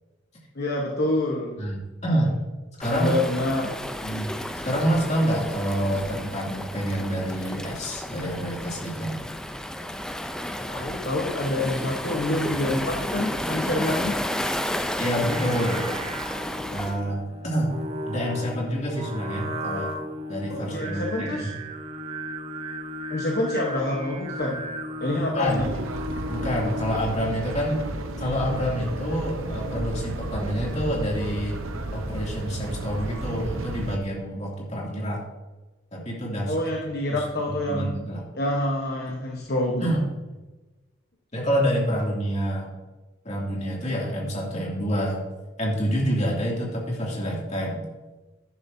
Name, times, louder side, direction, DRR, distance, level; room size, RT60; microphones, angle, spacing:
voice 1, 0.5-1.6 2.9-3.7 10.7-14.2 20.5-21.5 23.1-24.6 25.0-25.8 36.5-37.9 38.3-39.9, left 1 dB, 50° left, -1 dB, 1.1 m, -27 dB
voice 2, 1.6-2.4 2.8-3.2 4.0-9.1 15.0-15.8 16.7-17.7 18.1-19.9 20.3-21.5 25.3-25.7 26.3-27.8 28.2-31.6 31.9-35.2 35.9-36.5 37.1-37.2 37.7-38.2 39.8-40.1 41.3-42.7 43.2-45.2 45.6-47.8, equal, 35° left, -3 dB, 2.6 m, -27 dB
Waves surf, 2.8-17.0, left 1 dB, 5° left, 0.4 m, -32 dB
Singing, 15.1-27.3, equal, 30° right, 0.7 m, -35 dB
sound 1, 25.5-34.0, right 2 dB, 90° right, 0.9 m, -33 dB
10.5 x 10.5 x 2.7 m, 1.2 s
head